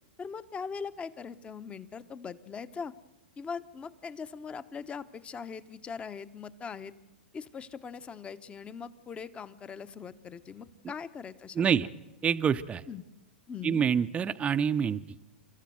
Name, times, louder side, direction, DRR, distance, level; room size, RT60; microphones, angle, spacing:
voice 1, 0.2-2.9 3.4-6.9 7.3-11.9 12.9-13.0 13.5-13.8, left 6 dB, 20° left, 14 dB, 1.0 m, -41 dB
voice 2, 11.5-11.9 12.2-12.8 13.6-15.0, right 7 dB, 20° right, 9 dB, 0.7 m, -26 dB
29.0 x 14.0 x 7.8 m, 1.0 s
hypercardioid pair, 110°, 6 cm